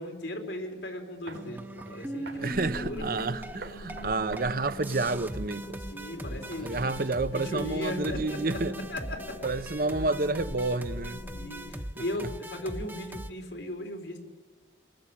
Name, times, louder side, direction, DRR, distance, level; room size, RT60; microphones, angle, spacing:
voice 1, 0.0-3.0 5.9-8.6 8.9-9.4 11.3-14.2, left 1 dB, 85° left, 4.1 m, -37 dB
sound 1, 1.3-4.1 4.4-4.5 4.8-13.3, right 1 dB, 10° right, 0.9 m, -40 dB
sound 2, 1.3-1.5 1.8-2.0 2.3-2.4 2.7-2.9 3.2-5.3 5.6-5.7, right 3 dB, 75° right, 2.9 m, -44 dB
sound 3, 2.4-11.8, equal, 35° left, 1.2 m, -43 dB
voice 2, 2.4-5.8 6.6-8.7 9.4-11.2 12.0-12.1, right 3 dB, 50° right, 0.8 m, -30 dB
28.0 x 19.5 x 8.8 m
head